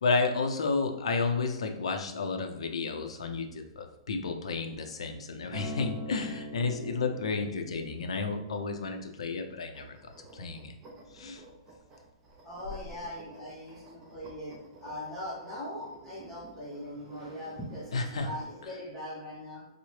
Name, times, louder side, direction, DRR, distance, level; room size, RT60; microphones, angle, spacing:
voice 1, 0.0-10.7 11.1-11.4 17.9-18.3, left 4 dB, 90° left, 5 dB, 0.5 m, -32 dB
Acoustic guitar, 5.5-9.8 10.6-10.7, equal, 35° right, 1.2 m, -44 dB
sound 1, 9.7-18.7, right 2 dB, 15° right, 0.5 m, -53 dB
voice 2, 12.4-14.5 14.8-19.7, left 1 dB, 10° left, -8 dB, 0.8 m, -40 dB
3.7 x 2.1 x 3.1 m, 0.88 s
hypercardioid pair, 160°, 3 cm